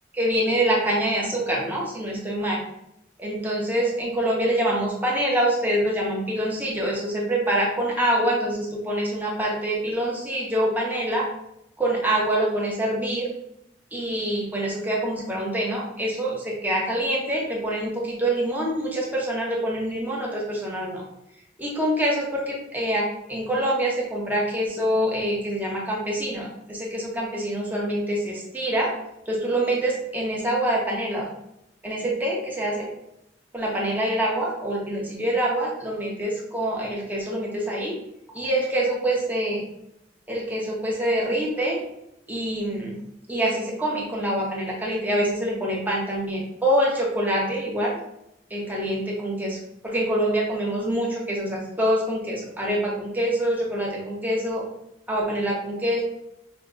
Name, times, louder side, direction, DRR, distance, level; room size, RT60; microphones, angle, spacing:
voice 1, 0.1-2.6 3.2-11.3 11.8-13.3 13.9-21.0 21.6-28.9 29.3-31.3 31.8-32.9 33.5-38.0 38.3-39.6 40.3-41.8 42.3-43.0 43.3-48.0 48.5-49.6 49.8-54.6 55.1-56.0, right 1 dB, 10° right, -4 dB, 1.1 m, -25 dB
5.8 x 2.9 x 2.5 m, 0.81 s
head